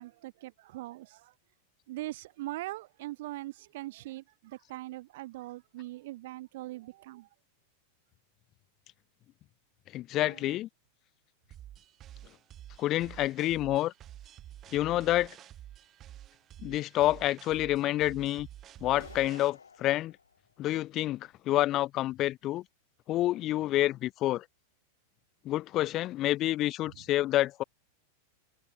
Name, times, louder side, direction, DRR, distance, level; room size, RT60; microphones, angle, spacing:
voice 1, 0.0-1.3 1.9-7.3 10.2-10.5, right 17 dB, 55° right, 2.8 m, -41 dB
voice 2, 9.9-10.7 12.8-13.9 14.7-15.4 16.6-18.5 18.8-20.1 20.6-22.6 23.1-24.4 25.4-27.6, left 15 dB, 35° left, 0.5 m, -28 dB
sound 1, 11.5-19.5, right 12 dB, 30° right, 5.8 m, -49 dB
sound 2, 18.8-20.8, left 5 dB, 75° left, 6.4 m, -51 dB
figure-of-eight pair, 90°, 0 cm